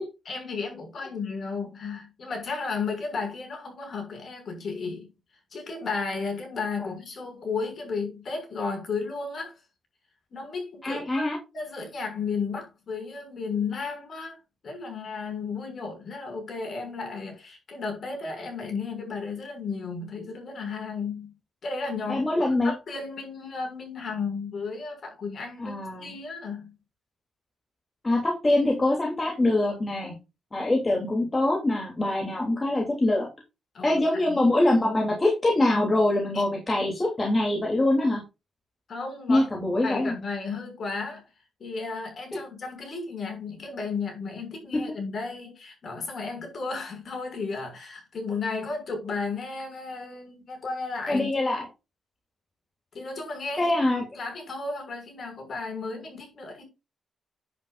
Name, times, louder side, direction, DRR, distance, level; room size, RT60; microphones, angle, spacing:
voice 1, 0.2-5.1 5.5-9.6 10.3-11.3 11.5-14.4 14.6-21.3 21.6-26.7 33.7-35.0 36.3-36.4 38.9-39.5 39.8-41.2 41.6-51.3 52.9-56.6, left 4 dB, 45° left, 6.4 m, -34 dB
voice 2, 10.8-11.4 22.1-22.7 25.6-26.1 28.0-30.1 30.5-33.3 33.8-38.2 39.3-40.1 51.1-51.7 53.6-54.0, left 1 dB, 20° left, 3.2 m, -24 dB
10.0 x 9.1 x 2.6 m
cardioid pair, 150°, 0 cm